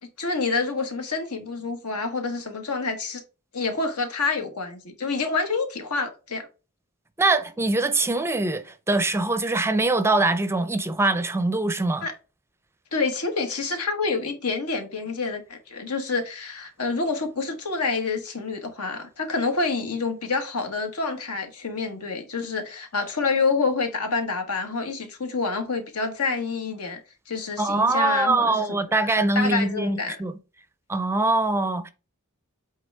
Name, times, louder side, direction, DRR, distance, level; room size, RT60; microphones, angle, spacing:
voice 1, 0.0-3.2 3.5-6.5 12.0-12.1 12.9-27.0 27.3-28.6 29.0-29.1 29.3-30.2, left 4 dB, 80° left, 1.5 m, -27 dB
voice 2, 7.2-12.1 27.6-30.3 30.9-31.9, right 2 dB, 10° right, 0.5 m, -23 dB
8.0 x 3.9 x 3.4 m
head